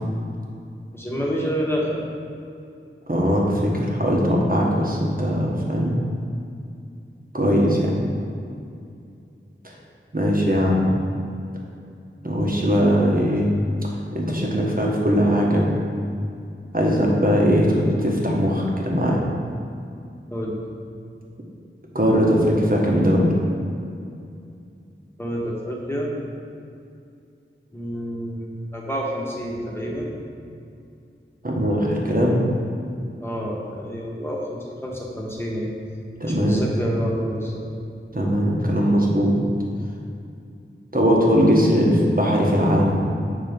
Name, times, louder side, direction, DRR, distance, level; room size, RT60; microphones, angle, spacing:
voice 1, 0.9-2.0 20.3-20.6 25.2-26.1 27.7-30.1 33.2-35.7 36.3-37.7, equal, 10° left, -3 dB, 1.3 m, -28 dB
voice 2, 3.1-6.0 7.3-7.9 10.1-11.0 12.2-13.5 13.8-15.7 16.7-19.2 21.9-23.2 31.4-32.4 36.2-36.6 38.1-39.4 40.9-43.0, equal, 45° right, -2 dB, 1.3 m, -20 dB
7.4 x 3.7 x 5.1 m, 2.5 s
wide cardioid pair, 50°, 21 cm